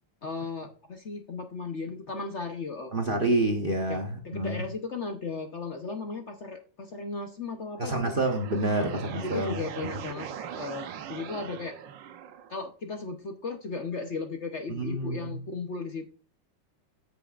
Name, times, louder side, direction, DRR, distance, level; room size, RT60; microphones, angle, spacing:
voice 1, 0.2-2.9 3.9-8.1 8.8-10.3 10.5-11.8 12.5-16.1, left 4 dB, 50° left, 1.0 m, -36 dB
voice 2, 2.9-4.6 7.8-9.6 14.7-15.4, right 2 dB, 35° right, 1.0 m, -28 dB
sound 1, 7.7-12.7, right 8 dB, 85° right, 1.5 m, -41 dB
14.0 x 6.3 x 2.4 m
omnidirectional pair, 1.9 m